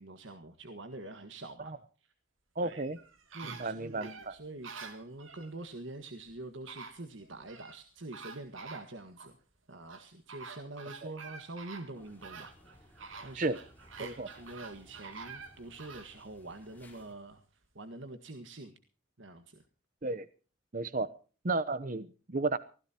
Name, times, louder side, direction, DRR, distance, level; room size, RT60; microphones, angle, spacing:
voice 1, 0.0-1.7 2.0-2.1 2.6-2.9 3.3-9.4 9.7-13.5 14.0-17.4 17.8-18.8 19.2-19.6, right 2 dB, 70° right, 8 dB, 1.7 m, -46 dB
voice 2, 2.6-3.0 3.4-4.3 11.0-11.1 13.4-13.6 14.2-14.3 20.0-20.3 20.7-21.1 21.4-22.6, right 3 dB, 40° right, 15 dB, 0.8 m, -33 dB
sound 1, 2.6-5.5 6.3-6.4 6.7-7.8 8.1-9.3 9.9-16.1 16.6-16.7, right 5 dB, 90° right, 2.6 m, -48 dB
sound 2, 11.9-17.1, left 1 dB, 10° left, 4.3 m, -59 dB
24.0 x 16.5 x 2.9 m, 0.38 s
head